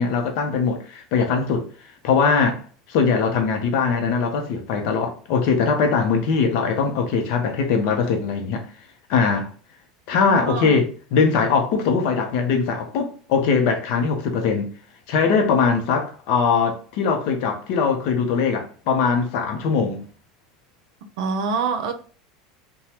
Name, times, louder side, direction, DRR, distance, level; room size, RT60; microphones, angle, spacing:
voice 1, 0.0-1.7 2.0-2.6 2.9-8.7 9.1-9.5 10.1-14.7 15.1-20.0, left 5 dB, 65° left, 0.6 m, -21 dB
voice 2, 10.2-10.8 21.2-21.9, right 5 dB, 75° right, 0.5 m, -25 dB
2.8 x 2.2 x 3.2 m
supercardioid pair, 105°, 3 cm